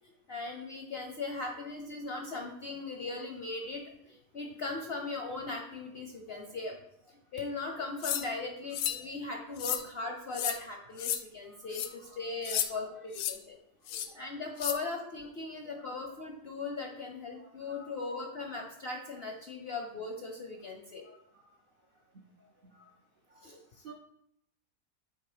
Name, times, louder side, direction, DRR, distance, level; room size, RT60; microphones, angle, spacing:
voice 1, 0.3-6.8 7.3-13.6 14.1-21.0 23.4-23.6, left 3 dB, 55° left, 2 dB, 0.7 m, -39 dB
sound 1, 8.0-8.3 8.7-9.0 9.6-9.8 10.3-10.6 11.0-11.2 11.7-11.9 12.4-12.7 13.1-13.3 13.9-14.1 14.6-14.8, left 11 dB, 80° left, 1.1 m, -32 dB
voice 2, 9.6-9.9 11.0-11.1 11.5-12.8 13.9-14.8 15.7-16.1 17.4-18.1 19.7-19.9 21.0-21.2 22.1-22.2 22.6-22.9 23.3-23.5 23.8-23.9, right 2 dB, 60° right, 0 dB, 0.5 m, -56 dB
7.7 x 2.8 x 4.9 m, 0.76 s
omnidirectional pair, 1.8 m